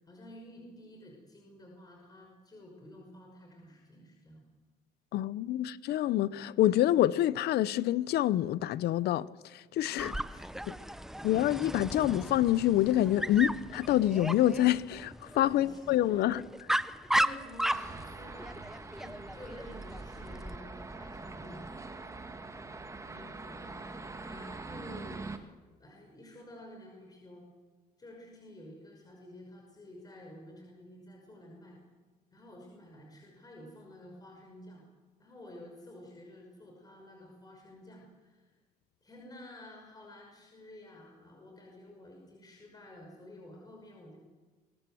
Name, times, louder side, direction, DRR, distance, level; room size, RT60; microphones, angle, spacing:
voice 1, 0.0-4.4 9.8-11.2 15.4-16.4 16.8-21.7 22.8-25.5 25.8-27.5 28.0-31.8 32.3-34.8 35.2-38.5 39.0-44.2, left 1 dB, 20° left, 5.9 m, -51 dB
voice 2, 5.1-10.1 10.7-10.8 11.2-16.4, left 13 dB, 70° left, 0.9 m, -27 dB
Dog, 10.0-20.6, right 1 dB, ahead, 0.7 m, -36 dB
sound 1, 17.7-25.4, right 3 dB, 20° right, 2.0 m, -44 dB
27.0 x 22.0 x 7.8 m
cardioid pair, 110°, 17 cm